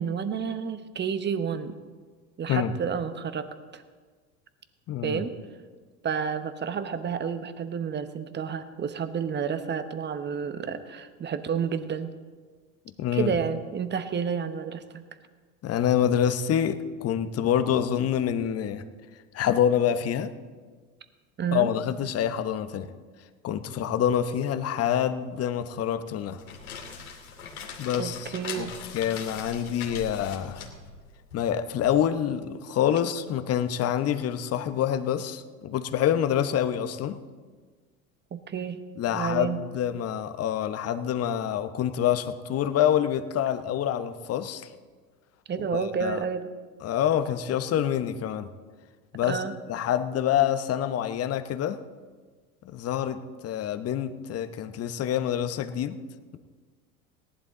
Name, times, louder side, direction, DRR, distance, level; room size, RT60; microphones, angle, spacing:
voice 1, 0.0-1.7 2.4-3.5 3.7-3.8 5.0-5.3 6.0-12.1 13.1-15.0 21.4-21.7 28.0-28.8 38.3-38.8 39.1-39.6 45.5-46.5 49.3-49.5, right 7 dB, 25° right, 11 dB, 1.0 m, -30 dB
voice 2, 4.9-5.2 13.0-13.3 15.6-18.8 19.3-20.3 21.5-22.9 23.4-26.4 27.8-28.7 28.9-30.6 31.3-37.2 39.0-44.7 45.7-46.2 46.8-48.5 49.1-49.4 49.7-51.8 52.6-56.0, left 9 dB, 35° left, 11 dB, 0.9 m, -26 dB
sound 1, 26.2-31.9, left 5 dB, 80° left, 2.7 m, -41 dB
18.0 x 11.0 x 3.8 m, 1.5 s
hypercardioid pair, 75°, 42 cm